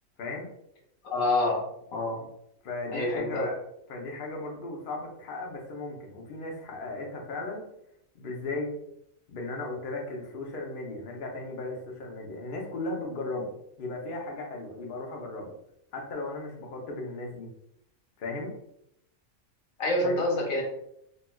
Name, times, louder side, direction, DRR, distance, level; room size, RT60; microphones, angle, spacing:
voice 1, 1.0-1.6 1.9-2.2 2.9-3.5 19.8-20.6, left 2 dB, 80° left, 0 dB, 1.2 m, -27 dB
voice 2, 2.6-3.5 3.9-7.6 8.1-8.7 9.3-15.6 15.9-17.5 18.2-18.5 20.0-20.2, left 2 dB, 55° left, 0 dB, 0.6 m, -36 dB
4.1 x 2.2 x 2.2 m, 0.77 s
omnidirectional pair, 1.4 m